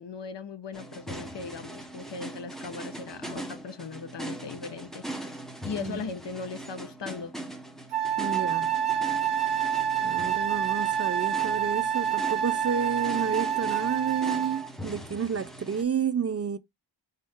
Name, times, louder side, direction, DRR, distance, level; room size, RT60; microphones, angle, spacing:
voice 1, 0.0-5.1 5.6-7.4, left 5 dB, 70° left, 1.0 m, -38 dB
sound 1, 0.7-15.8, right 1 dB, ahead, 1.1 m, -41 dB
Wind instrument woodwind instrument, 7.9-14.7, right 9 dB, 65° right, 0.9 m, -27 dB
voice 2, 8.2-8.7 10.0-16.6, right 7 dB, 35° right, 0.4 m, -30 dB
5.4 x 2.7 x 3.5 m
wide cardioid pair, 85°, 44 cm